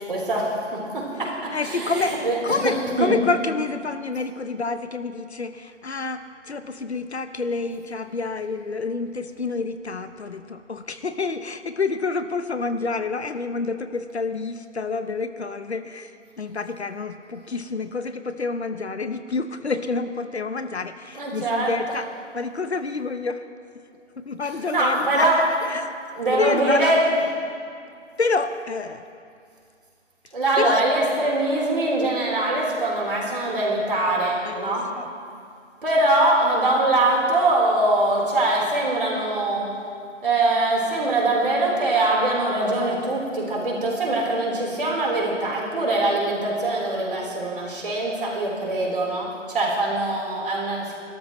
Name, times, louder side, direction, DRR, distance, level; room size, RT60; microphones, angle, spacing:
voice 1, 0.1-2.4 2.6-2.7 3.0-3.1 21.2-21.7 24.7-25.4 26.2-27.0 30.3-34.9 35.8-39.7 40.2-51.0, right 2 dB, 45° right, -3 dB, 3.9 m, -23 dB
voice 2, 1.5-22.1 22.3-23.4 24.2-25.9 26.2-26.9 28.2-29.0 30.6-30.8 34.4-35.1, left 4 dB, 60° left, 10 dB, 0.8 m, -28 dB
29.5 x 13.0 x 3.1 m, 2.3 s
figure-of-eight pair, 170°, 37 cm